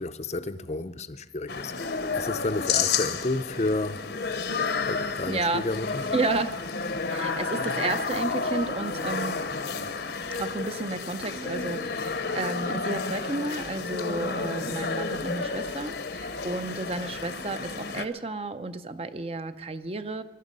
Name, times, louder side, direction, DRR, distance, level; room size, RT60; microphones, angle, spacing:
voice 1, 0.0-4.0 4.9-6.1, left 2 dB, 35° left, 0.6 m, -31 dB
sound 1, 1.5-18.0, left 4 dB, 60° left, 0.9 m, -31 dB
voice 2, 5.3-5.7 6.1-6.7 7.1-9.4 10.3-20.2, right 3 dB, 30° right, 0.6 m, -32 dB
21.5 x 12.0 x 5.4 m
head